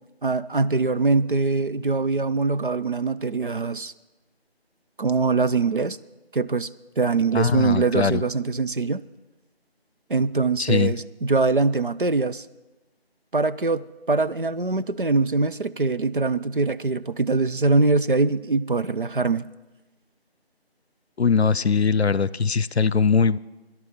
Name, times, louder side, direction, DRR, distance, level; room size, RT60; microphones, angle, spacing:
voice 1, 0.2-3.9 5.0-6.0 6.3-6.7 7.0-9.0 10.1-12.5 13.3-19.5, right 3 dB, 55° right, 12 dB, 0.5 m, -23 dB
voice 2, 7.3-8.2 10.6-10.9 21.2-23.4, left 5 dB, 90° left, 20 dB, 0.6 m, -21 dB
21.0 x 11.0 x 4.3 m, 1.1 s
figure-of-eight pair, 170°, 31 cm